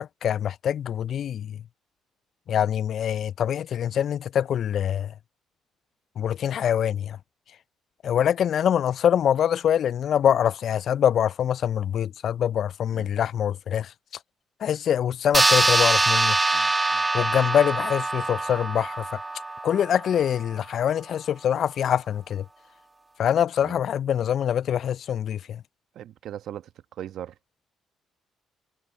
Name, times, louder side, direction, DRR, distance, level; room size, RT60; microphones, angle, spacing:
voice 1, 0.0-1.6 2.5-5.1 6.2-7.2 8.0-13.9 14.6-16.4 17.1-19.0 19.6-22.4 23.2-25.6, left 9 dB, 60° left, 0.3 m, -24 dB
sound 1, 15.3-20.2, right 2 dB, 20° right, 1.3 m, -23 dB
voice 2, 16.5-17.0 23.6-23.8 25.9-27.3, right 11 dB, 70° right, 1.1 m, -39 dB
hypercardioid pair, 50°, 0 cm